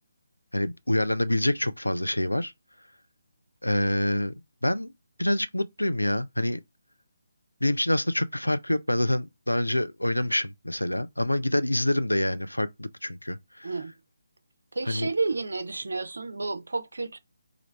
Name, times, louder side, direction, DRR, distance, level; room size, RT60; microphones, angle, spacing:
voice 1, 0.5-2.5 3.6-4.3 4.6-4.9 5.2-6.6 7.6-13.7 14.9-15.1, left 1 dB, 85° left, 0.5 m, -26 dB
voice 2, 14.7-17.2, right 3 dB, 65° right, 0.5 m, -31 dB
3.3 x 2.4 x 3.1 m
figure-of-eight pair, 145°, 0 cm